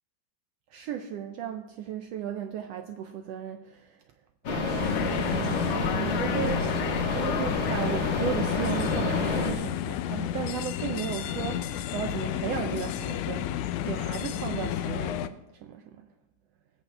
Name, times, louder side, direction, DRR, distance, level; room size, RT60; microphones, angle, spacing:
voice 1, 0.7-4.0 4.5-13.5 13.8-16.0, right 9 dB, 85° right, 6 dB, 1.4 m, -35 dB
sound 1, 4.4-9.5, left 3 dB, 45° left, 1.4 m, -28 dB
sound 2, 4.8-15.3, left 11 dB, 80° left, 1.9 m, -32 dB
20.0 x 8.2 x 3.4 m, 0.96 s
omnidirectional pair, 3.5 m